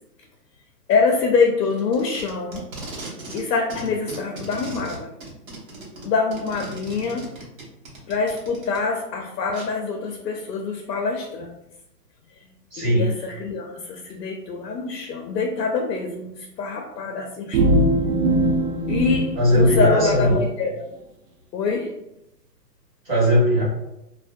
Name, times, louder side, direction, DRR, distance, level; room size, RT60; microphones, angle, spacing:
voice 1, 0.9-2.7 3.3-5.1 6.0-7.3 8.1-11.6 12.4-17.6 18.9-20.8 21.5-21.9, left 4 dB, 85° left, 3 dB, 0.6 m, -25 dB
Packing tape duct tape, 1.7-3.4 3.7-8.8 9.5-9.7, right 2 dB, 55° right, 0.9 m, -37 dB
voice 2, 12.7-13.1 19.3-20.3 23.0-23.6, equal, 10° right, -16 dB, 1.1 m, -18 dB
sound 1, 17.5-20.4, right 1 dB, 80° right, 0.6 m, -21 dB
2.5 x 2.1 x 2.5 m, 0.88 s
hypercardioid pair, 175°, 48 cm